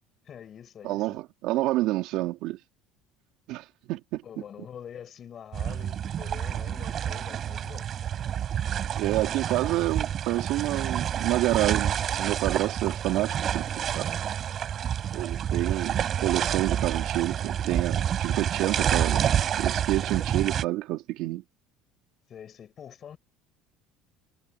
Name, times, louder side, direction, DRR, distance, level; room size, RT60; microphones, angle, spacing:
voice 1, 0.3-1.2 4.2-7.9 22.3-23.2, left 8 dB, 30° left, 7.4 m, -45 dB
voice 2, 0.8-2.6 3.5-4.2 9.0-14.1 15.1-19.2 19.6-21.4, right 17 dB, 55° right, 4.1 m, -28 dB
sound 1, 5.5-20.6, right 9 dB, 30° right, 7.8 m, -28 dB
cardioid pair, 165°, 0 cm